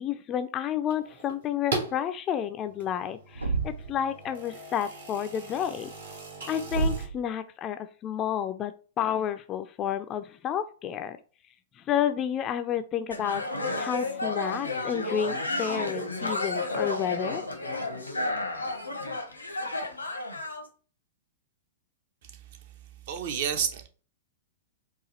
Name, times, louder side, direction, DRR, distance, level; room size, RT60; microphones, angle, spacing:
voice 1, 0.0-5.9 6.5-8.7 9.0-11.2 11.9-13.4 13.8-17.4, left 9 dB, 25° left, 0.4 m, -30 dB
sound 1, 0.9-2.0 2.6-7.1, right 3 dB, 65° right, 1.4 m, -39 dB
Thump thud, 3.3-4.0 6.7-7.2, right 3 dB, 85° right, 0.6 m, -28 dB
sound 2, 13.1-20.6, left 2 dB, 85° left, 0.9 m, -32 dB
voice 2, 22.2-22.7 23.1-23.9, right 8 dB, 50° right, 0.7 m, -31 dB
4.8 x 2.4 x 2.9 m
figure-of-eight pair, 105°, 0 cm